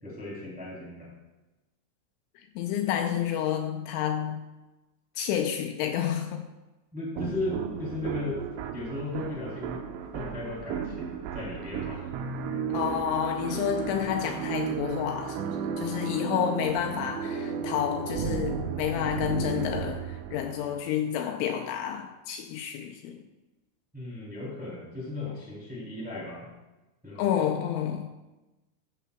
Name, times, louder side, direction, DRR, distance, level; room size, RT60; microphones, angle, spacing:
voice 1, 0.0-1.1 6.9-8.4 8.7-9.8 10.1-12.1 23.9-26.5 27.0-27.3, left 2 dB, 5° right, -5 dB, 1.9 m, -36 dB
voice 2, 2.4-4.5 5.2-6.4 12.7-15.4 15.8-23.2 27.2-28.1, left 9 dB, 80° left, 5 dB, 2.9 m, -29 dB
sound 1, 7.2-20.8, right 7 dB, 80° right, 3.2 m, -34 dB
15.0 x 12.0 x 2.3 m, 1.1 s
omnidirectional pair, 5.8 m